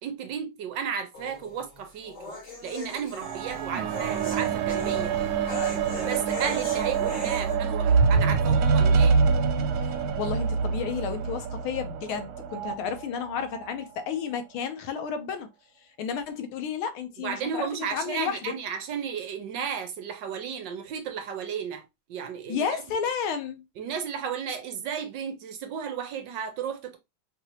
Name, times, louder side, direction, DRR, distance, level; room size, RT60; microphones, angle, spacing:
voice 1, 0.0-2.4 2.6-5.1 6.0-9.2 17.2-21.8 22.1-22.7 23.8-27.0, right 7 dB, 70° right, 1.3 m, -34 dB
sound 1, 1.1-7.5, left 1 dB, 55° left, 2.9 m, -39 dB
sound 2, 3.2-12.7 13.5-13.7, right 5 dB, 85° right, 0.8 m, -25 dB
voice 2, 9.8-15.5 16.0-18.5 22.5-23.6, left 7 dB, 85° left, 1.6 m, -32 dB
5.2 x 2.8 x 2.8 m
omnidirectional pair, 2.2 m